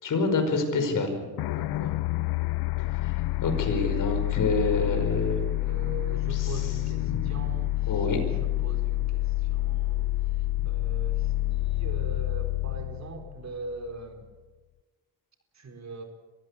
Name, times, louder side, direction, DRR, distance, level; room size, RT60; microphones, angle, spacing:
voice 1, 0.0-1.2 3.0-3.1 3.4-5.4 6.3-6.5 7.1-7.3 7.9-8.4, left 3 dB, 55° left, 6 dB, 5.2 m, -27 dB
sound 1, 1.4-14.1, left 17 dB, 70° left, 0.6 m, -28 dB
voice 2, 1.4-2.1 5.6-14.2 15.5-16.0, right 3 dB, 45° right, 4 dB, 4.4 m, -42 dB
23.5 x 15.0 x 8.4 m, 1.3 s
cardioid pair, 90°, 38 cm